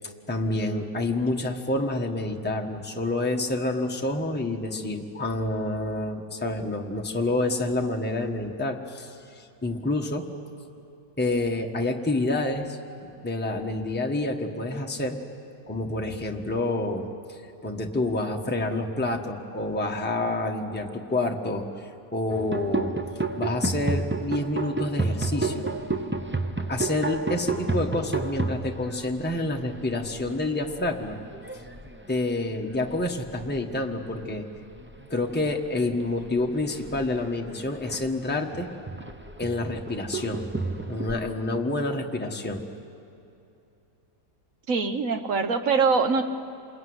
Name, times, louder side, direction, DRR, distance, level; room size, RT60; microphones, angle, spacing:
voice 1, 0.3-10.3 11.2-15.2 15.7-22.9 23.4-25.7 26.7-31.2 32.1-34.4 35.1-38.7 39.4-40.4 40.9-42.6, left 2 dB, 5° left, 1 dB, 1.4 m, -28 dB
sound 1, 22.3-33.7 34.0-34.4 34.7-41.3, right 3 dB, 10° right, 0.6 m, -32 dB
voice 2, 44.7-46.2, right 4 dB, 55° right, 7 dB, 1.5 m, -23 dB
27.5 x 22.0 x 9.7 m, 2.7 s
omnidirectional pair, 1.8 m